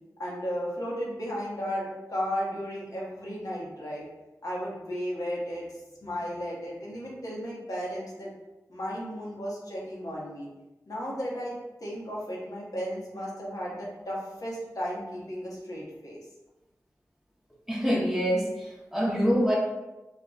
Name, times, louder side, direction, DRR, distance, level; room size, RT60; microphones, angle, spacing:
voice 1, 0.2-4.1 4.4-5.6 6.0-8.3 8.7-10.5 10.9-16.2, equal, 75° left, -5 dB, 0.9 m, -34 dB
voice 2, 17.7-19.6, equal, 5° right, -3 dB, 0.8 m, -25 dB
2.4 x 2.2 x 3.7 m, 1.0 s
wide cardioid pair, 55°, 6 cm